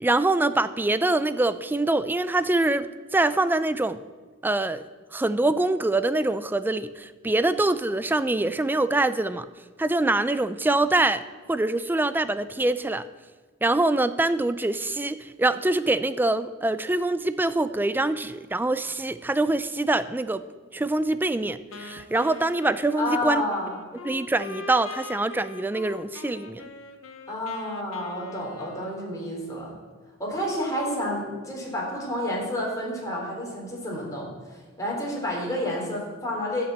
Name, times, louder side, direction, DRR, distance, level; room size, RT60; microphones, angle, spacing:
voice 1, 0.0-4.0 4.4-4.8 5.1-9.5 9.8-11.2 11.5-13.0 13.6-20.4 20.7-23.4 24.0-26.6, right 2 dB, 10° right, 13 dB, 0.4 m, -24 dB
Wind instrument woodwind instrument, 21.7-29.6, left 3 dB, 85° left, 0.9 m, -42 dB
voice 2, 23.0-23.7 27.3-29.8 30.2-36.6, left 1 dB, 15° left, -3 dB, 3.5 m, -30 dB
11.5 x 5.9 x 7.9 m, 1.3 s
head